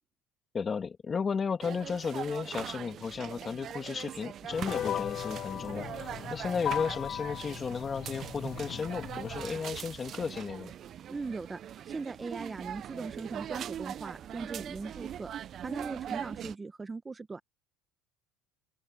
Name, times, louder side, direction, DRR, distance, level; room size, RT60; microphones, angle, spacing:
voice 1, 0.5-10.7, left 5 dB, 30° left, 2.9 m, -34 dB
sound 1, 1.6-16.6, right 10 dB, 45° right, 0.7 m, -41 dB
sound 2, 4.5-9.5, left 10 dB, 50° left, 1.2 m, -37 dB
voice 2, 11.1-11.6 11.8-17.4, right 4 dB, 20° right, 1.1 m, -39 dB
open air
supercardioid pair, 100°, 0 cm